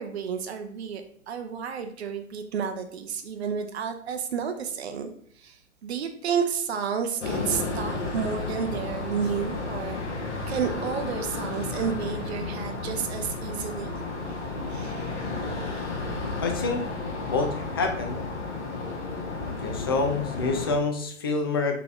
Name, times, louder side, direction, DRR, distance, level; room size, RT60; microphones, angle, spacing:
voice 1, 0.0-5.1 5.4-10.0 10.5-14.4 14.7-15.3 15.6-15.8, right 7 dB, 60° right, 6 dB, 0.6 m, -31 dB
sound 1, 7.2-20.7, left 3 dB, 65° left, 1.4 m, -32 dB
voice 2, 16.4-16.8 17.3-18.2 19.6-21.8, left 3 dB, 20° left, 4 dB, 0.3 m, -27 dB
3.9 x 3.7 x 3.4 m, 0.63 s
figure-of-eight pair, 110°, 37 cm